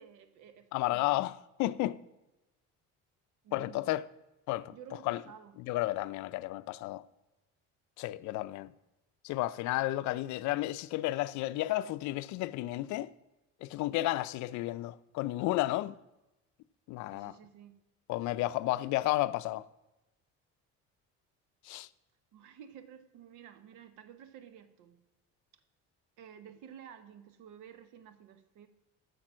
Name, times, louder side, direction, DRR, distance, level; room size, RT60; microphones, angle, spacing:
voice 1, 0.0-1.2 3.4-3.9 4.7-5.6 17.1-17.8 22.3-25.0 26.2-28.7, right 9 dB, 80° right, 1.0 m, -52 dB
voice 2, 0.7-1.3 1.6-2.0 3.5-4.0 4.5-4.7 5.1-5.2 5.7-7.0 8.0-8.7 9.2-13.1 13.6-16.0 16.9-17.3 18.1-19.7 21.7-21.9, left 17 dB, 75° left, 0.5 m, -32 dB
8.8 x 7.1 x 6.1 m
cardioid pair, 120°, 29 cm